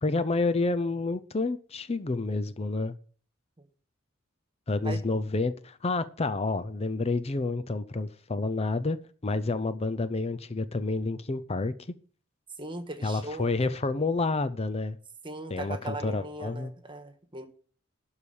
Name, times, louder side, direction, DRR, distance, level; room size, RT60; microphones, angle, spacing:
voice 1, 0.0-2.9 4.7-11.7 13.0-15.0 15.5-16.7, left 3 dB, 30° left, 0.6 m, -29 dB
voice 2, 12.6-13.5 15.2-17.5, right 2 dB, 25° right, 1.6 m, -38 dB
12.0 x 4.9 x 8.6 m
head